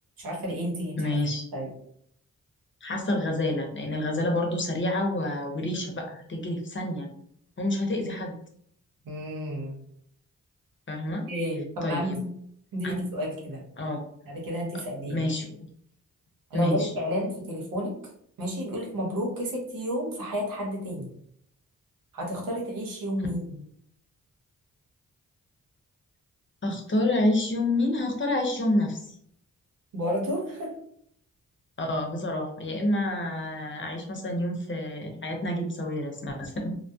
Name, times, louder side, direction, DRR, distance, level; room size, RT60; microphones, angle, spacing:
voice 1, 0.2-1.1 1.5-1.7 9.0-9.7 11.3-12.3 12.7-13.6 14.3-15.3 16.5-17.9 18.4-21.1 22.1-23.6 29.9-30.7, equal, 85° right, -1 dB, 0.9 m, -31 dB
voice 2, 1.0-1.4 2.8-7.1 7.6-8.3 10.9-11.2 11.8-12.2 12.8-13.0 13.8-14.0 15.1-15.5 16.5-16.9 26.6-29.0 31.8-36.7, left 1 dB, 35° left, 2 dB, 0.7 m, -28 dB
2.2 x 2.0 x 2.6 m, 0.67 s
cardioid pair, 50°, 33 cm